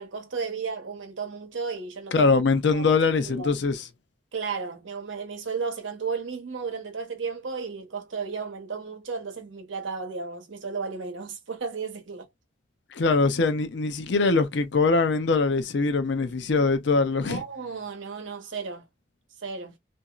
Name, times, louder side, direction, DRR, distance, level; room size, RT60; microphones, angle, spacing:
voice 1, 0.0-2.3 2.7-2.9 3.3-3.5 4.3-12.3 17.2-18.8 19.4-19.7, right 5 dB, 85° right, 0.8 m, -34 dB
voice 2, 2.1-3.8 12.9-17.4, left 4 dB, 65° left, 0.5 m, -22 dB
2.9 x 2.5 x 2.3 m
head